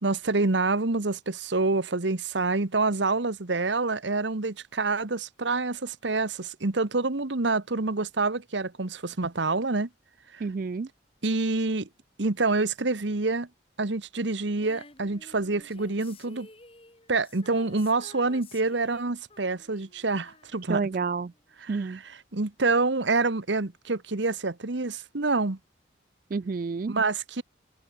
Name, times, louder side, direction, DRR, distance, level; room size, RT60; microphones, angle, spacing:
voice 1, 0.0-9.9 10.3-10.5 11.2-11.9 12.2-13.5 13.8-16.5 17.1-20.8 21.6-25.6 26.9-27.4, right 3 dB, 75° right, 1.3 m, -27 dB
voice 2, 10.4-10.9 20.7-21.3 21.7-22.0 26.3-26.9, right 4 dB, 45° right, 0.4 m, -29 dB
Female singing, 14.6-21.6 22.7-22.8, left 2 dB, 30° left, 7.5 m, -52 dB
head